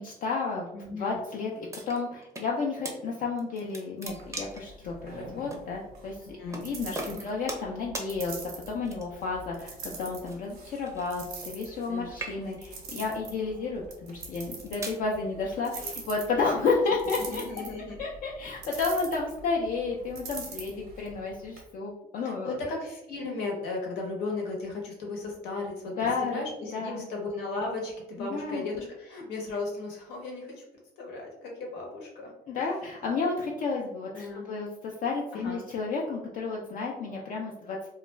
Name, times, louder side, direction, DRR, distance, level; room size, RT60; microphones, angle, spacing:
voice 1, 0.0-6.2 6.5-7.0 7.2-8.3 8.7-17.4 18.0-22.5 26.0-26.4 26.7-27.1 28.2-28.7 32.5-37.8, left 4 dB, 55° left, -2 dB, 0.4 m, -31 dB
voice 2, 0.7-1.2 6.2-6.6 7.1-7.3 11.9-12.2 15.8-15.9 17.2-18.0 18.7-18.8 22.2-30.6 31.0-32.3 34.1-34.5 35.3-35.6, left 3 dB, 85° left, 0 dB, 0.9 m, -36 dB
sound 1, 1.7-2.5 2.8-3.0 3.4-4.7 5.5-5.6 6.5-6.7 6.9-7.7 7.9-8.1 8.8-9.3 10.2-11.9 12.1-12.7 13.4-13.6 14.3-15.0, right 2 dB, 15° right, 0.5 m, -39 dB
sound 2, 4.1-21.6, right 3 dB, 85° right, 0.9 m, -44 dB
2.3 x 2.2 x 3.1 m, 0.87 s
cardioid pair, 110°, 17 cm